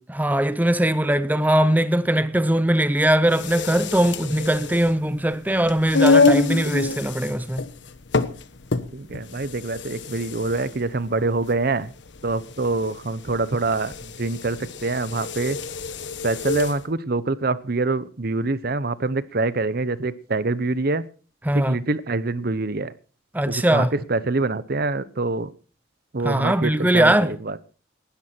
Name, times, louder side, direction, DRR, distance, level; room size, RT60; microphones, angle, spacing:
voice 1, 0.1-7.6 21.4-21.8 23.3-24.0 26.2-27.4, right 1 dB, 10° right, 0.7 m, -20 dB
sound 1, 3.2-16.8, left 4 dB, 65° left, 1.1 m, -26 dB
voice 2, 8.9-11.9 12.2-13.9 14.2-14.6 14.8-15.6 16.2-21.0 21.5-22.9 23.7-23.8 24.1-25.5 26.1-27.1, right 3 dB, 50° right, 0.8 m, -25 dB
19.0 x 13.0 x 4.4 m
head